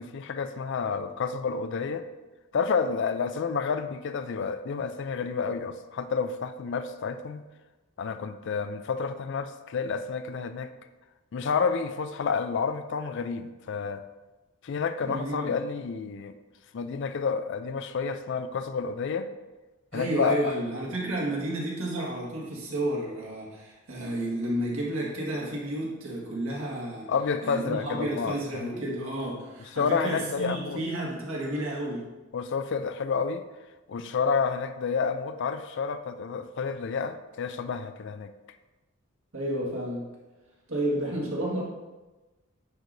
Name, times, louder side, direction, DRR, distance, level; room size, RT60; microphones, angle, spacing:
voice 1, 0.0-2.1 2.5-7.4 8.0-10.7 11.3-14.0 14.6-16.3 16.7-19.3 19.9-20.5 27.1-28.7 29.8-30.8 32.3-33.4 33.9-38.3, left 5 dB, 55° left, 11 dB, 0.4 m, -30 dB
voice 2, 15.0-15.5 19.9-27.1 27.4-32.1 39.3-40.1 40.7-41.6, right 1 dB, 70° right, -3 dB, 1.7 m, -31 dB
9.5 x 4.8 x 2.6 m, 1.1 s
head